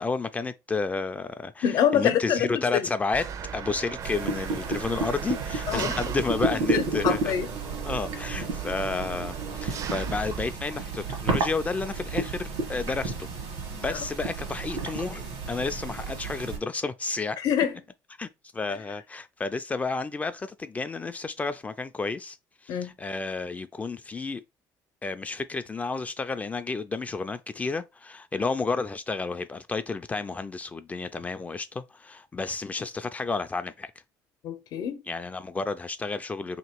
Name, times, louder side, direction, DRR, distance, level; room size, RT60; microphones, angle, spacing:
voice 1, 0.0-3.3 3.5-7.3 7.8-13.3 13.8-17.4 18.2-18.3 18.5-22.4 22.6-24.4 25.0-33.9 35.1-36.6, left 4 dB, 20° left, 0.3 m, -31 dB
voice 2, 1.6-2.9 5.7-5.9 6.7-7.5 13.9-14.0 17.4-17.8 22.7-22.9 34.4-35.0, left 9 dB, 60° left, 0.8 m, -26 dB
Engine, 3.1-10.5, right 7 dB, 50° right, 0.5 m, -37 dB
sound 1, 4.0-16.6, right 3 dB, 90° right, 1.4 m, -32 dB
3.0 x 2.9 x 4.4 m
cardioid pair, 110°, 7 cm